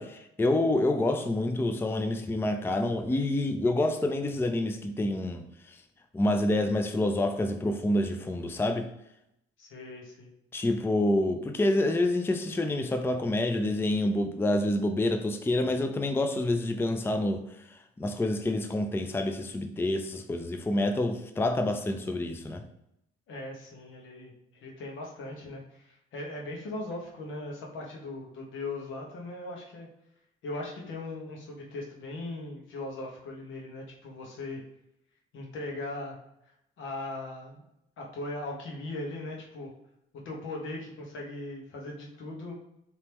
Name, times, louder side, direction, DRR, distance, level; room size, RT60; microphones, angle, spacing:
voice 1, 0.0-5.4 6.1-8.9 10.5-17.4 18.0-22.6, left 1 dB, 10° left, 0.4 m, -27 dB
voice 2, 9.6-10.3 23.3-24.3 24.6-29.9 30.4-34.6 35.3-36.2 36.8-37.6 38.0-39.7 40.2-42.5, left 2 dB, 80° left, 1.2 m, -39 dB
4.4 x 3.0 x 3.4 m
cardioid pair, 90°, 20 cm